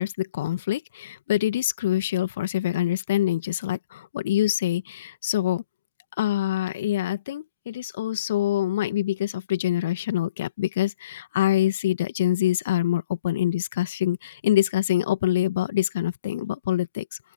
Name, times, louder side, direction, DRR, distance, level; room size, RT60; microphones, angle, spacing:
voice 1, 0.0-5.6 6.2-17.1, left 13 dB, 70° left, 2.2 m, -25 dB
open air
figure-of-eight pair, 80°, 0 cm